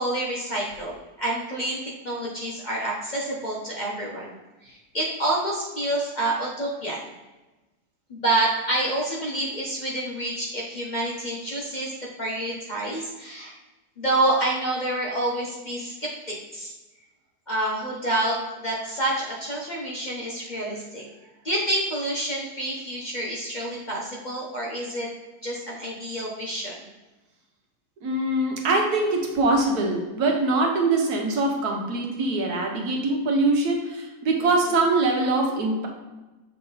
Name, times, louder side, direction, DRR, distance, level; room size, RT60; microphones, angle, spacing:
voice 1, 0.0-1.8 2.0-4.4 4.6-7.0 8.1-11.9 12.2-13.5 14.0-16.7 17.5-21.0 21.4-25.1 25.4-26.8, right 1 dB, 35° left, -3 dB, 0.8 m, -28 dB
voice 2, 28.0-35.9, right 2 dB, 75° right, 1 dB, 1.5 m, -23 dB
7.0 x 3.5 x 3.9 m, 1.1 s
omnidirectional pair, 1.7 m